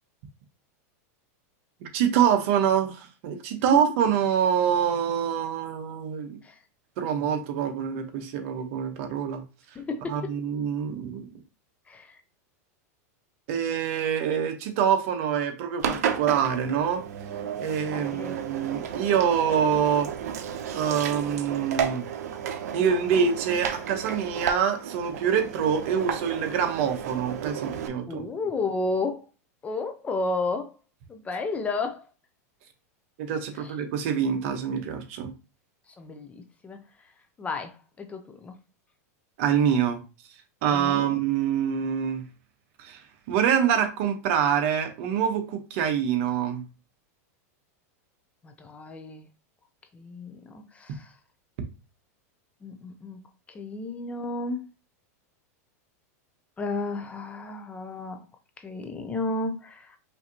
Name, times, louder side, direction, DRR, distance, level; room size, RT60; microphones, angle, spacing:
voice 1, 1.8-6.4 7.0-9.4 10.1-11.3 13.5-17.0 17.6-20.1 20.7-22.1 22.7-28.2 33.2-35.3 39.4-40.0 40.6-42.2 42.8-43.0 43.3-46.6, right 8 dB, 55° right, 1.0 m, -25 dB
voice 2, 9.8-10.4 11.9-12.2 18.0-18.4 28.1-29.2 29.6-30.7 31.1-32.0 33.6-33.7 36.0-36.8 37.4-38.5 40.7-41.1 48.4-49.3 49.9-51.1 52.6-53.2 53.5-54.7 56.6-58.3 58.6-60.0, left 3 dB, 15° left, 0.5 m, -32 dB
Engine, 15.8-27.9, right 8 dB, 80° right, 0.6 m, -33 dB
5.5 x 2.7 x 2.8 m
supercardioid pair, 140°, 9 cm